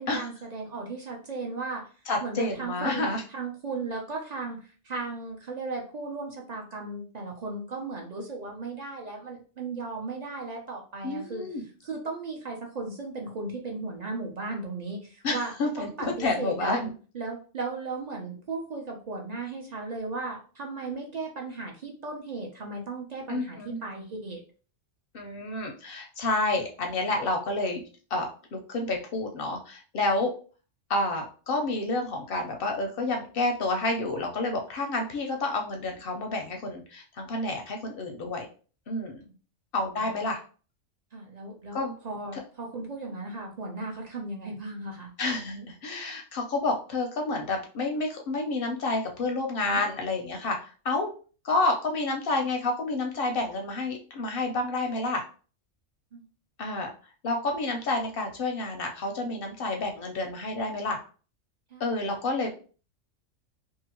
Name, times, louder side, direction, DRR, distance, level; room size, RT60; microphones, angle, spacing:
voice 1, 0.0-1.9 2.2-11.4 11.8-15.5 15.8-16.8 17.1-24.4 40.0-40.1 41.1-45.1 49.6-49.8 56.1-56.2 61.7-62.2, right 3 dB, 50° right, 0 dB, 0.5 m, -36 dB
voice 2, 2.1-3.2 11.0-11.6 15.2-16.9 23.3-23.8 25.1-27.8 28.1-30.3 30.9-38.5 38.9-39.2 39.7-40.4 41.7-41.9 42.3-42.4 45.2-51.1 51.4-55.2 56.6-56.9 57.2-61.0 61.8-62.5, left 2 dB, 60° left, 3 dB, 0.6 m, -29 dB
2.7 x 2.5 x 2.8 m, 0.38 s
omnidirectional pair, 1.3 m